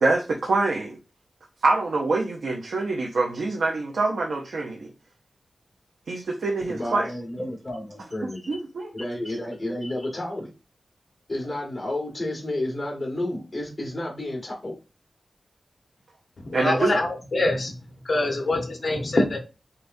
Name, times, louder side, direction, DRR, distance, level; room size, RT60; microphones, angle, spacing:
voice 1, 0.0-1.0 1.6-4.9 6.1-7.1 8.5-8.9 16.5-17.0, right 3 dB, 85° right, 0.7 m, -25 dB
voice 2, 6.7-8.5 8.9-10.5 11.3-14.7, left 1 dB, 30° left, 2.0 m, -31 dB
voice 3, 16.5-17.7 18.0-19.4, left 2 dB, 50° left, 1.2 m, -24 dB
6.6 x 2.3 x 2.6 m
wide cardioid pair, 105°, 0 cm